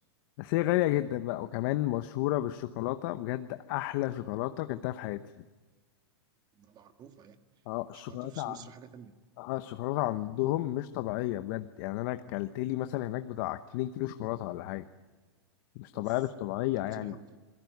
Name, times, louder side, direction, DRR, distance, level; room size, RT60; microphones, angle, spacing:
voice 1, 0.4-5.2 7.7-8.6 9.4-14.9 15.7-17.2, left 16 dB, 55° left, 10 dB, 1.0 m, -32 dB
voice 2, 6.6-7.4 7.9-9.1 15.9-16.1 16.7-17.4, right 7 dB, 30° right, 8 dB, 1.8 m, -50 dB
26.5 x 18.0 x 9.4 m, 1.3 s
hypercardioid pair, 130°, 13 cm